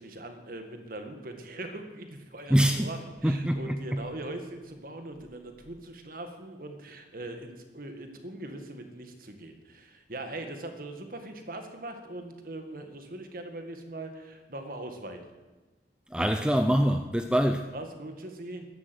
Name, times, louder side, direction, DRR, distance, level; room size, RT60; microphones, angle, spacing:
voice 1, 0.0-15.2 17.7-18.7, right 2 dB, 50° right, 1.8 m, -41 dB
voice 2, 2.5-2.9 3.2-4.0 16.1-17.7, equal, 5° right, 0.5 m, -24 dB
14.0 x 12.0 x 7.9 m
head